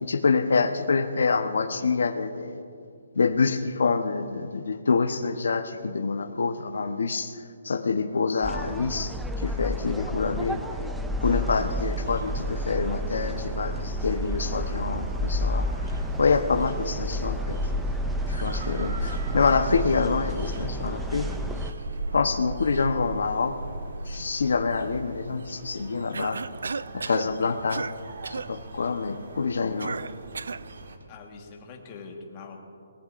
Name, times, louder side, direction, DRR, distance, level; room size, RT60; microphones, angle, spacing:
voice 1, 0.0-2.6 3.2-7.3 7.6-9.1 9.4-10.6 11.2-15.7 16.2-17.6 18.3-21.3 22.1-23.5 24.1-26.4 26.9-27.8 28.3-30.0, left 4 dB, 75° left, 7 dB, 0.9 m, -26 dB
sound 1, 8.4-21.7, equal, 5° right, 0.4 m, -30 dB
sound 2, 11.5-31.0, right 2 dB, 65° right, 1.4 m, -39 dB
Cough, 26.1-27.3 27.7-28.0 28.2-28.5 29.8-30.7, right 4 dB, 90° right, 0.4 m, -33 dB
voice 2, 31.1-32.6, left 4 dB, 20° left, 1 dB, 1.4 m, -43 dB
23.5 x 19.0 x 2.5 m, 2.4 s
hypercardioid pair, 175°, 0 cm